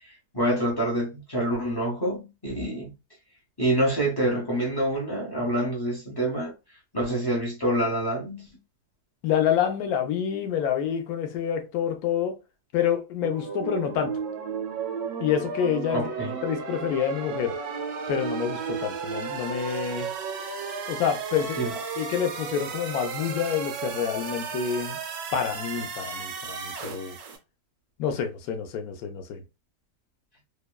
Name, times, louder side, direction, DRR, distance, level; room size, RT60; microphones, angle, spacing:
voice 1, 0.3-2.9 3.6-6.5 6.9-8.5 15.9-16.4 21.6-21.8, right 1 dB, 35° left, 0.3 m, -26 dB
voice 2, 9.2-12.4 12.7-14.1 15.2-16.1 16.4-17.6 18.1-20.1 20.9-21.6 22.0-25.0 25.3-27.2 28.0-29.4, left 8 dB, 75° left, 1.0 m, -27 dB
sound 1, 13.2-27.4, right 5 dB, 70° right, 1.1 m, -34 dB
2.9 x 2.2 x 2.2 m
omnidirectional pair, 1.7 m